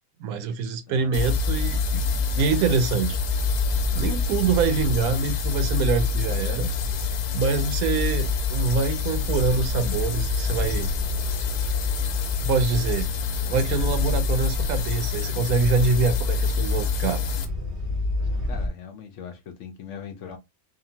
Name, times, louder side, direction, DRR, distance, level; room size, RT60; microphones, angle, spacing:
voice 1, 0.2-3.2 3.9-6.7 7.3-10.9 12.4-13.1 13.5-17.2, right 5 dB, 75° right, 1.0 m, -25 dB
voice 2, 0.9-1.3 7.6-7.7 13.4-14.3 18.4-20.4, left 7 dB, 65° left, 0.8 m, -41 dB
sound 1, 1.1-17.5, left 11 dB, 90° left, 1.1 m, -29 dB
sound 2, 1.1-18.7, left 1 dB, 50° right, 0.8 m, -28 dB
2.7 x 2.5 x 2.7 m
omnidirectional pair, 1.6 m